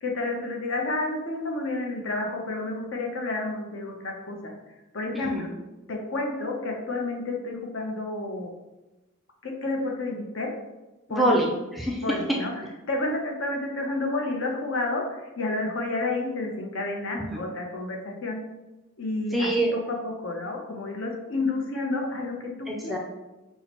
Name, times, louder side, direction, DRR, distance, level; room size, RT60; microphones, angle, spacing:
voice 1, 0.0-4.5 4.9-5.5 5.9-8.5 9.4-10.5 11.1-11.4 12.0-12.5 12.9-18.4 19.0-23.0, left 2 dB, 65° left, 1 dB, 0.7 m, -30 dB
voice 2, 5.1-5.5 11.1-12.4 17.1-17.5 19.3-19.8 22.7-23.0, right 1 dB, ahead, -3 dB, 0.4 m, -26 dB
5.6 x 2.0 x 2.9 m, 1.1 s
head